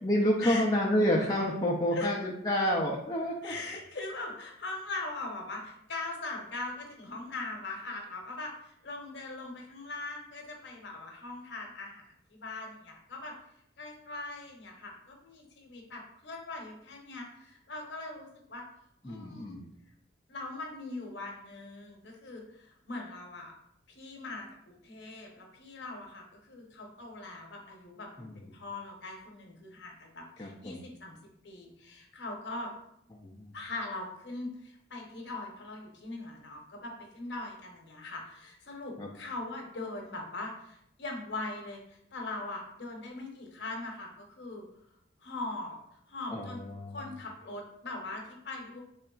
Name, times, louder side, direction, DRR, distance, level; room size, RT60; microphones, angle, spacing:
voice 1, 0.0-3.5 19.0-19.7 28.2-28.4 30.4-30.8 33.1-33.6 39.0-39.1 46.3-47.1, equal, 20° left, -3 dB, 0.3 m, -29 dB
voice 2, 3.4-13.3 13.8-18.6 19.0-19.6 20.3-23.5 23.9-31.2 31.4-32.7 33.5-44.7 45.2-45.8 46.1-46.6 46.9-48.8, left 2 dB, 60° left, 1 dB, 0.8 m, -41 dB
3.8 x 3.3 x 2.3 m, 0.77 s
head